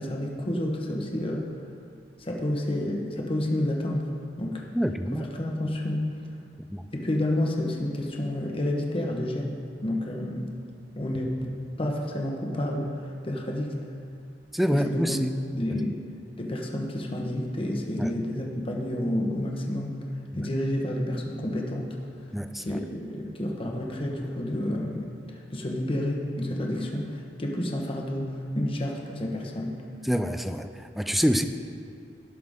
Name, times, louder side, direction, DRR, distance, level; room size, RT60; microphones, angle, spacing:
voice 1, 0.0-1.5 2.2-4.1 4.4-4.6 5.1-6.2 6.9-10.5 11.0-13.8 14.7-15.2 15.5-16.0 16.4-20.1 20.3-22.0 22.6-29.8, left 1 dB, 30° left, 0 dB, 1.1 m, -30 dB
voice 2, 4.7-5.3 6.7-6.9 14.5-15.3 18.0-18.1 22.3-22.8 30.0-31.5, equal, ahead, 8 dB, 0.4 m, -26 dB
17.0 x 5.8 x 3.6 m, 2.5 s
head